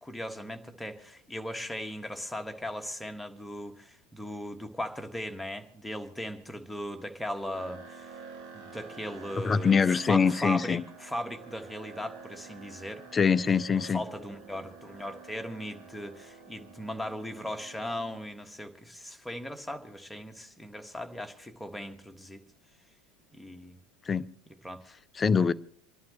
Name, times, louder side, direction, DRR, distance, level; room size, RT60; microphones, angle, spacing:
voice 1, 0.0-8.2 8.5-13.3 13.8-22.4 23.3-23.8 24.6-24.8, equal, 5° left, 1.5 m, -38 dB
sound 1, 7.5-18.2, right 5 dB, 60° right, 2.2 m, -49 dB
voice 2, 9.4-10.8 13.1-14.0 24.1-24.3 25.2-25.5, left 6 dB, 25° left, 0.5 m, -24 dB
28.0 x 11.5 x 3.1 m
figure-of-eight pair, 75°, 0 cm